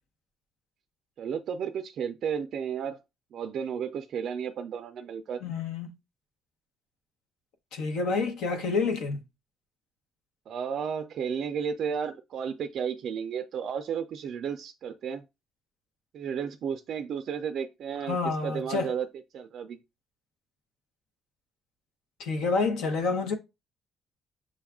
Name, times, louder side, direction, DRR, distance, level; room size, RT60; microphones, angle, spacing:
voice 1, 1.2-3.0 3.3-5.4 10.5-15.2 16.1-19.1 19.3-19.8, right 7 dB, 50° right, 0.3 m, -33 dB
voice 2, 5.4-5.9 7.7-9.2 18.1-18.9 22.2-23.4, left 4 dB, 80° left, 1.0 m, -28 dB
6.3 x 2.3 x 3.5 m
cardioid pair, 175°, 0 cm